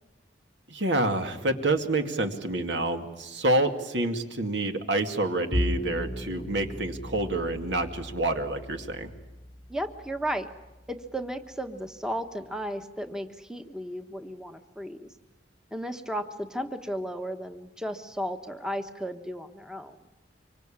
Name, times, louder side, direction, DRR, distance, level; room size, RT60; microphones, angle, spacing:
voice 1, 0.7-9.1, right 2 dB, 75° right, 6 dB, 2.3 m, -28 dB
Bowed string instrument, 5.5-12.0, left 1 dB, 20° left, 1.0 m, -36 dB
voice 2, 9.7-10.5 10.9-15.1 15.7-20.0, equal, 5° right, 7 dB, 1.1 m, -34 dB
25.5 x 24.0 x 8.7 m, 1.1 s
head